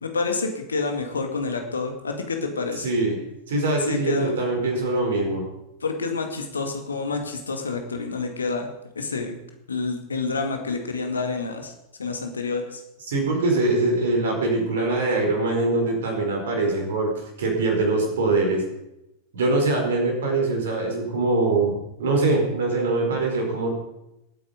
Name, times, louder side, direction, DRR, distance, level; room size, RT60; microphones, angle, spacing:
voice 1, 0.0-2.9 3.8-4.4 5.8-8.7 9.0-9.4 9.7-11.7 12.0-12.8, left 4 dB, 75° left, 5 dB, 2.2 m, -28 dB
voice 2, 2.7-3.1 3.5-5.4 13.1-17.1 17.4-18.6 19.3-23.7, right 2 dB, 60° right, 2 dB, 4.7 m, -23 dB
19.0 x 9.2 x 5.2 m, 0.89 s
figure-of-eight pair, 90°, 0 cm